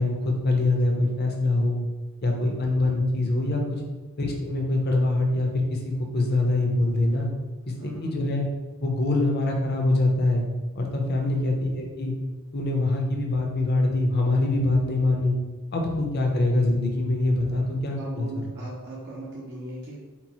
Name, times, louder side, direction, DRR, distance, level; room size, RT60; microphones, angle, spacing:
voice 1, 0.0-1.8 2.2-3.8 4.2-7.3 7.8-8.5 8.8-10.5 10.7-12.1 12.5-15.4 15.7-18.4, left 2 dB, 50° left, 1 dB, 0.7 m, -24 dB
voice 2, 7.7-8.1 16.1-16.3 17.5-17.6 18.0-20.0, right 1 dB, 50° right, -5 dB, 0.6 m, -39 dB
4.5 x 2.0 x 4.1 m, 1.2 s
head